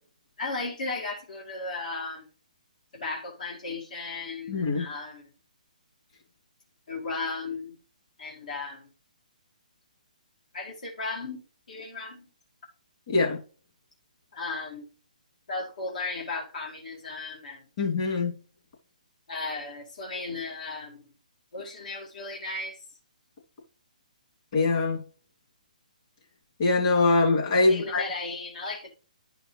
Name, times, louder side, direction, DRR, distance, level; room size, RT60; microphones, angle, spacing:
voice 1, 0.4-2.3 2.9-5.3 6.9-7.8 8.2-8.9 10.5-11.4 11.7-12.3 14.3-14.9 15.5-17.6 19.3-21.0 21.5-22.8 27.7-28.9, left 3 dB, 65° left, 1.9 m, -35 dB
voice 2, 4.5-4.9 13.1-13.4 17.8-18.3 24.5-25.0 26.6-28.0, left 3 dB, 45° left, 2.7 m, -23 dB
10.5 x 5.0 x 3.2 m
hypercardioid pair, 140°, 4 cm